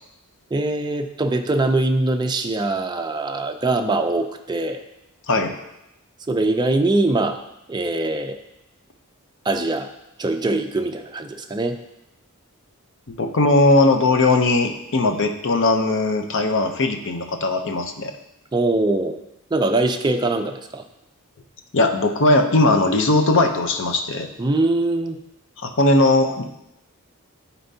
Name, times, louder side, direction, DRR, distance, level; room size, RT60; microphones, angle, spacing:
voice 1, 0.5-4.8 6.3-7.4 7.7-8.4 9.4-9.9 10.2-11.8 18.5-19.2 19.5-20.8 24.4-25.2, right 2 dB, 20° right, 4 dB, 0.4 m, -22 dB
voice 2, 13.1-18.1 21.7-24.3 25.6-26.4, left 2 dB, 55° left, 5 dB, 0.7 m, -19 dB
11.5 x 4.3 x 2.8 m, 0.86 s
head